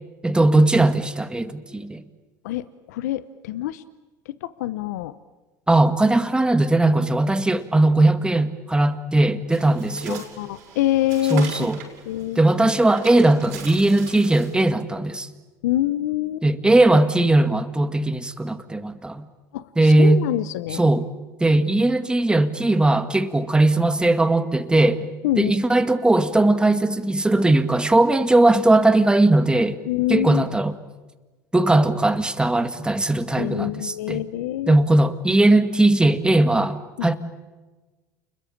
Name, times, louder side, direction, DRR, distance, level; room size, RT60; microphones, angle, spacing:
voice 1, 0.2-2.0 5.7-10.2 11.3-11.8 12.4-15.3 16.4-19.2 19.8-20.2 20.7-21.1 21.4-25.1 25.4-29.8 30.1-30.7 31.5-34.2 34.7-37.1, right 2 dB, 10° right, 9 dB, 2.0 m, -19 dB
voice 2, 2.4-3.8 4.3-5.2 10.0-11.7 12.1-12.4 15.6-16.4 19.5-20.8 25.2-25.6 29.9-30.5 33.4-34.8 37.0-37.1, left 14 dB, 80° left, 15 dB, 0.9 m, -26 dB
Bird, 9.5-14.6, right 6 dB, 85° right, 6.3 m, -40 dB
29.5 x 22.0 x 8.7 m, 1.2 s
hypercardioid pair, 85°, 9 cm